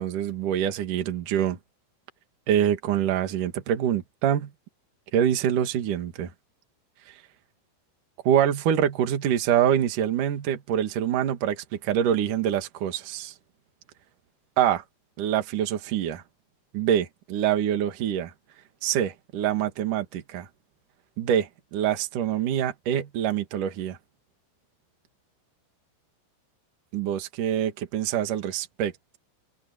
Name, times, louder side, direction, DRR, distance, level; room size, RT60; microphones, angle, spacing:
voice 1, 0.0-1.6 2.5-4.5 5.1-6.3 7.1-7.2 8.2-13.3 14.6-14.8 15.2-16.2 16.7-18.3 18.8-20.5 21.2-24.0 26.9-28.9, right 10 dB, 50° right, 3.0 m, -25 dB
omnidirectional pair, 5.9 m